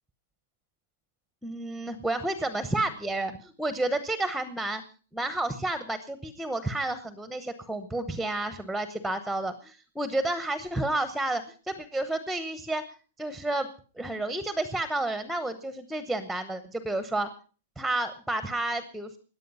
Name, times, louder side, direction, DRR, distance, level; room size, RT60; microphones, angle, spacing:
voice 1, 1.4-4.8 5.1-12.8 13.2-13.7 14.0-17.3 17.8-19.2, right 2 dB, ahead, 12 dB, 0.9 m, -31 dB
17.5 x 10.5 x 5.5 m, 0.39 s
supercardioid pair, 160°, 0 cm